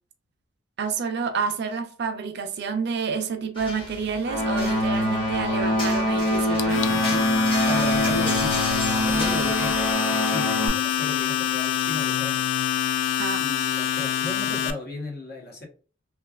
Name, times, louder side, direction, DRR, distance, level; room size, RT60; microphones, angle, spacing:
voice 1, 0.8-7.2 13.2-13.4, right 5 dB, 60° right, 0.5 m, -29 dB
sound 1, 3.5-9.9, left 1 dB, 30° left, 1.1 m, -36 dB
sound 2, 4.2-10.7, equal, 85° left, 1.3 m, -24 dB
Domestic sounds home sounds, 6.6-14.7, left 10 dB, 70° left, 0.3 m, -26 dB
voice 2, 7.6-9.8 10.1-12.5 13.4-15.7, left 2 dB, 55° left, 0.9 m, -35 dB
3.2 x 2.4 x 2.3 m
head